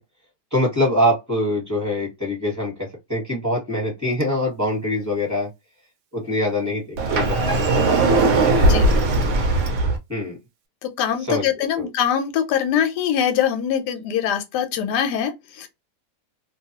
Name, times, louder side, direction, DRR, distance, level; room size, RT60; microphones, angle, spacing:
voice 1, 0.5-5.5 6.1-8.5 10.1-10.4 11.3-11.5 11.8-11.9, left 1 dB, 10° right, 1.1 m, -24 dB
Sliding door, 7.0-10.0, right 2 dB, 65° right, 0.7 m, -18 dB
voice 2, 8.6-8.9 10.8-15.7, left 9 dB, 85° left, 1.2 m, -23 dB
2.5 x 2.3 x 2.8 m
omnidirectional pair, 1.7 m